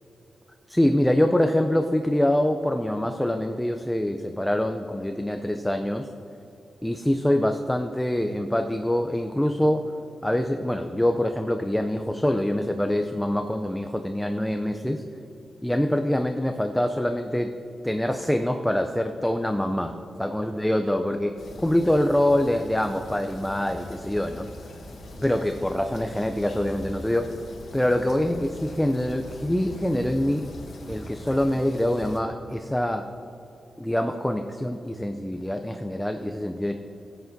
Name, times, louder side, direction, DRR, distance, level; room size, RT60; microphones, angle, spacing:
voice 1, 0.7-6.1 6.8-9.9 10.2-15.0 15.6-17.5 17.8-19.9 20.2-21.4 21.6-24.5 25.2-27.4 27.7-30.4 30.9-33.0 33.8-36.7, left 1 dB, 5° left, 6 dB, 0.4 m, -25 dB
sound 1, 21.4-32.2, left 1 dB, 65° left, 1.3 m, -42 dB
15.0 x 8.0 x 2.6 m, 2.8 s
wide cardioid pair, 125°, 0 cm